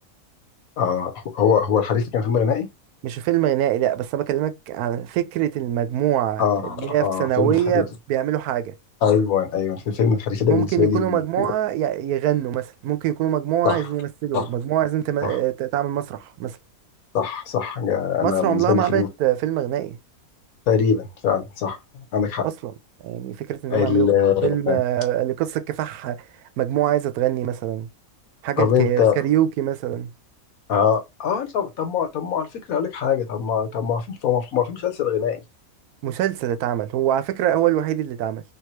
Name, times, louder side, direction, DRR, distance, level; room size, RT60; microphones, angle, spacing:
voice 1, 0.8-2.7 6.4-7.8 9.0-11.5 13.6-13.8 14.3-14.5 15.2-15.4 17.1-19.1 20.7-21.8 22.1-22.5 23.7-24.8 28.6-29.2 30.7-35.4, left 7 dB, 70° left, 1.4 m, -22 dB
voice 2, 3.0-8.7 10.5-16.6 18.2-20.0 22.4-22.7 23.0-24.2 24.4-26.3 26.6-27.9 28.4-30.1 36.0-38.4, right 12 dB, 85° right, 1.1 m, -24 dB
3.5 x 2.7 x 3.0 m
omnidirectional pair, 1.5 m